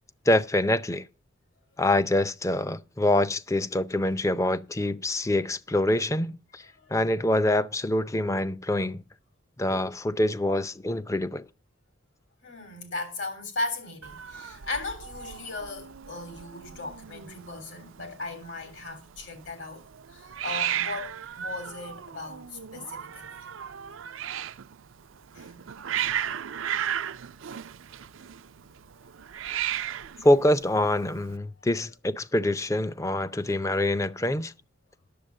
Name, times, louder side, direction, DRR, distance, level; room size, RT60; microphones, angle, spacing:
voice 1, 0.3-1.1 1.8-6.6 6.9-9.0 9.6-11.4 30.2-34.5, left 1 dB, 15° left, 0.5 m, -25 dB
voice 2, 12.4-23.4 25.3-25.6, left 2 dB, 70° left, 3.3 m, -37 dB
Hiss, 14.0-31.4, right 10 dB, 85° right, 0.5 m, -36 dB
10.5 x 7.4 x 6.4 m
head